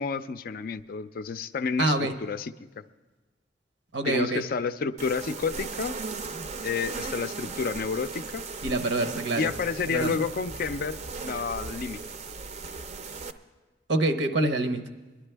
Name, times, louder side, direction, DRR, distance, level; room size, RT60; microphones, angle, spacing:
voice 1, 0.0-2.5 4.0-6.0 6.6-8.5 9.4-12.0, left 5 dB, 50° left, 12 dB, 0.4 m, -30 dB
voice 2, 1.8-2.1 3.9-4.4 8.6-9.5 9.8-10.1 13.9-14.8, right 2 dB, 75° right, 7 dB, 0.8 m, -26 dB
sound 1, 5.0-13.3, right 4 dB, 40° right, 0.5 m, -37 dB
21.5 x 11.0 x 3.4 m, 1.2 s
head